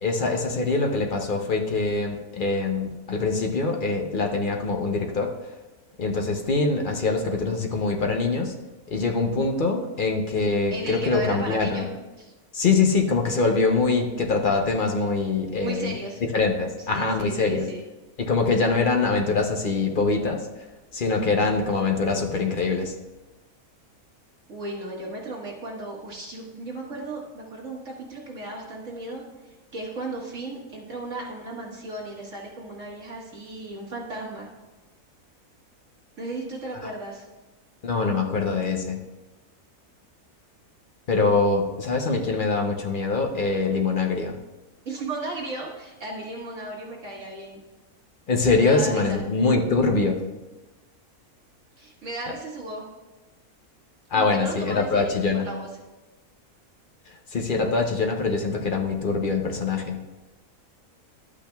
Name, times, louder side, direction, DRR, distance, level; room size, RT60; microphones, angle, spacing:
voice 1, 0.0-5.3 6.0-8.5 8.9-11.9 12.5-15.9 16.3-17.6 18.2-20.5 20.9-22.9 37.8-39.0 41.1-44.4 48.3-50.2 54.1-55.5 57.3-60.0, left 3 dB, 45° left, 2 dB, 0.7 m, -23 dB
voice 2, 10.7-11.9 12.2-12.3 15.6-16.2 16.8-17.8 24.5-34.5 36.2-37.3 44.9-47.6 48.6-49.2 51.8-52.9 54.1-55.7, right 2 dB, 55° right, -3 dB, 1.9 m, -35 dB
12.0 x 8.4 x 2.3 m, 1.1 s
omnidirectional pair, 1.6 m